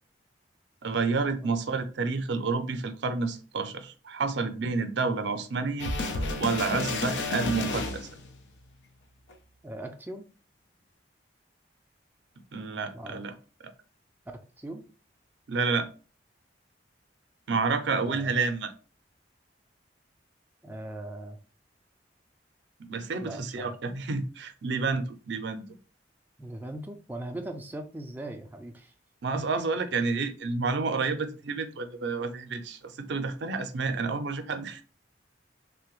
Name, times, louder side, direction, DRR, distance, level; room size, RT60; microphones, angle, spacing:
voice 1, 0.8-5.9 6.4-8.1 12.5-13.3 13.6-13.7 15.5-15.9 17.5-18.7 22.8-25.6 29.2-34.8, right 4 dB, 75° right, 0.5 m, -29 dB
sound 1, 5.8-8.4 9.3-9.4, left 2 dB, 80° left, 0.5 m, -31 dB
voice 2, 9.6-10.3 12.9-13.3 14.6-14.9 18.0-18.4 20.6-21.4 23.2-23.7 26.4-28.9 29.3-29.7, right 1 dB, 10° right, 0.4 m, -39 dB
3.3 x 2.2 x 3.0 m
head